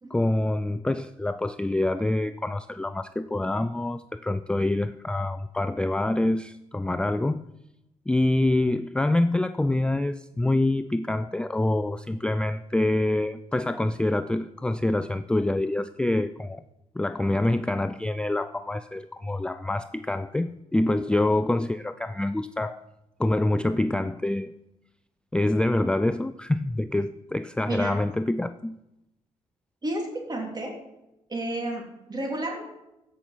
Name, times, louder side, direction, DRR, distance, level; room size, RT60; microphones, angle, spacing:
voice 1, 0.1-7.4 8.1-16.6 17.0-22.8 23.2-24.5 25.3-28.8, left 1 dB, 5° left, 12 dB, 0.3 m, -26 dB
voice 2, 27.7-28.0 29.8-30.7 31.3-32.6, right 1 dB, 30° right, 1 dB, 3.2 m, -31 dB
15.0 x 6.1 x 5.9 m, 0.91 s
cardioid pair, 90°, 14 cm